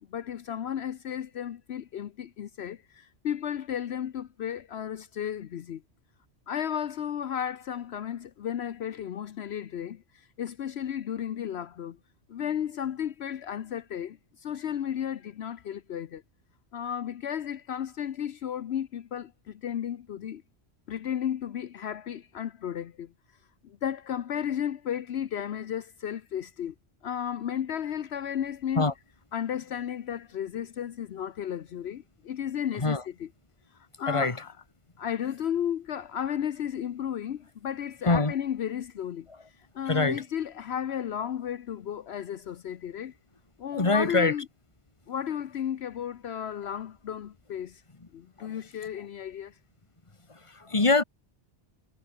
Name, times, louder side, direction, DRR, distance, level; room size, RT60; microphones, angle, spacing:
voice 1, 0.1-5.8 6.5-12.0 12.3-16.2 16.7-20.4 20.9-23.1 23.6-26.7 27.0-28.9 29.3-33.3 34.0-34.5 35.0-39.3 39.7-43.1 43.6-44.4 45.1-47.8 48.1-49.5, left 9 dB, 70° left, 1.0 m, -33 dB
voice 2, 34.1-34.4 38.1-38.3 39.9-40.2 43.7-44.3 48.4-48.5 50.3-51.0, left 3 dB, 30° left, 1.8 m, -24 dB
omnidirectional pair, 1.1 m